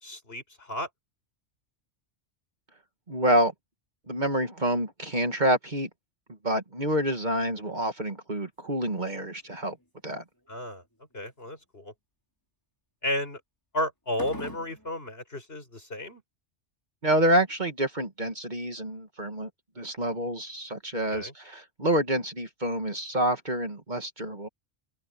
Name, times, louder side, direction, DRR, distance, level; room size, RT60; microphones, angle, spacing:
voice 1, 0.0-0.9 10.5-10.8 11.1-11.9 13.0-13.4 13.7-16.2 21.1-21.3, left 1 dB, 55° left, 6.8 m, -33 dB
voice 2, 3.1-3.5 4.1-5.9 6.4-9.8 10.0-10.2 17.0-19.5 19.8-24.5, right 1 dB, 40° right, 2.0 m, -27 dB
sound 1, 8.6-9.0 9.3-9.9 10.4-10.8 11.3-11.5 14.1-14.9, equal, 15° left, 6.5 m, -42 dB
open air
omnidirectional pair, 1.2 m